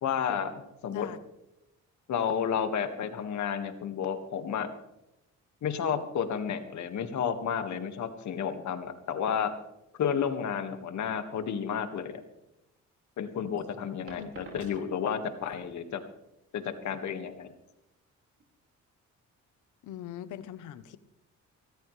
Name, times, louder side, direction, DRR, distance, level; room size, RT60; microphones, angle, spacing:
voice 1, 0.0-1.1 2.1-4.7 5.6-9.5 10.0-12.2 13.2-16.0 16.5-17.5, left 7 dB, 70° left, 7 dB, 1.9 m, -31 dB
voice 2, 0.9-1.2 14.2-14.3 19.8-21.0, left 10 dB, 85° left, 14 dB, 1.0 m, -41 dB
sound 1, 12.9-18.9, right 2 dB, 45° right, 6.1 m, -52 dB
24.0 x 13.5 x 3.3 m, 0.88 s
cardioid pair, 90°, 30 cm